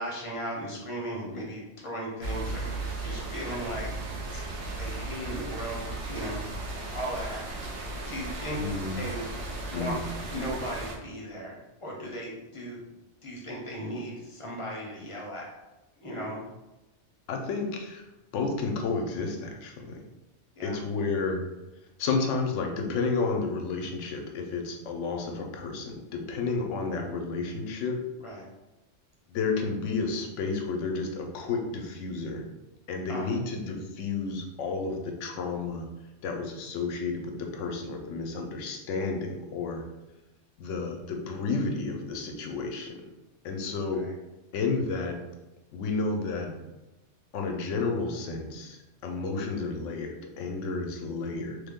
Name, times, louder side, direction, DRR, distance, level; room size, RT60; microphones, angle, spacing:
voice 1, 0.0-3.9 4.3-4.4 4.8-7.4 8.1-8.6 9.0-9.3 9.6-10.0 10.3-12.8 13.2-15.5 16.0-16.4 20.6-20.8 28.2-28.4 33.1-33.3 43.9-44.1, equal, 30° left, -3 dB, 0.7 m, -37 dB
sound 1, 2.2-10.9, right 2 dB, 70° right, 0.9 m, -36 dB
voice 2, 8.6-9.0 9.7-10.0 17.3-18.0 18.3-20.0 20.6-21.4 22.0-28.0 29.3-32.4 32.9-35.9 36.2-39.8 40.6-43.1 43.4-44.0 44.5-45.2 45.7-46.6 47.3-51.6, left 4 dB, 80° left, 3 dB, 0.9 m, -31 dB
3.3 x 2.1 x 3.5 m, 1.0 s
omnidirectional pair, 1.2 m